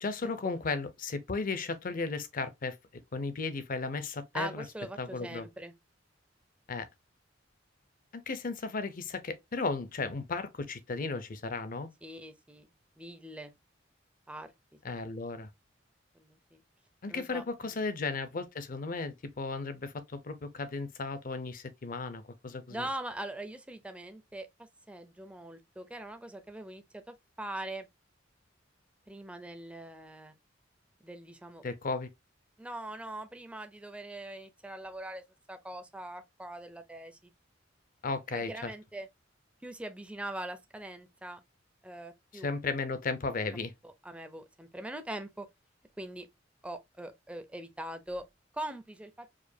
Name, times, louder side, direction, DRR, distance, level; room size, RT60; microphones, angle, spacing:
voice 1, 0.0-2.8 3.1-4.6 5.0-5.5 6.7-6.9 8.1-11.9 14.8-15.5 17.0-22.9 31.6-32.1 38.0-38.7 42.3-43.7, left 3 dB, 45° left, 0.6 m, -35 dB
voice 2, 4.3-5.7 12.0-12.7 13.0-13.5 14.3-15.0 16.1-16.6 17.1-17.4 22.7-24.5 24.9-27.9 29.1-30.4 31.0-31.6 32.6-35.2 35.5-37.3 38.3-39.1 39.6-41.4 41.8-42.5 43.8-45.5 46.0-46.3 46.6-48.2 48.5-49.3, right 1 dB, 5° right, 0.4 m, -42 dB
4.9 x 2.2 x 2.6 m
head